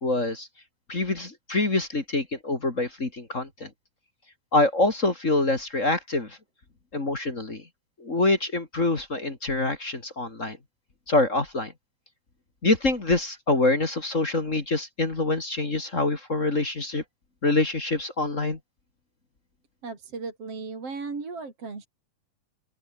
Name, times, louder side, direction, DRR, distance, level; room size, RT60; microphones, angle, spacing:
voice 1, 0.0-0.5 0.9-3.7 4.5-6.4 6.9-7.6 8.0-10.6 11.1-11.7 12.6-17.0 17.4-18.6, left 2 dB, 25° left, 2.2 m, -25 dB
voice 2, 19.8-21.9, right 4 dB, 40° right, 5.1 m, -36 dB
open air
omnidirectional pair, 4.1 m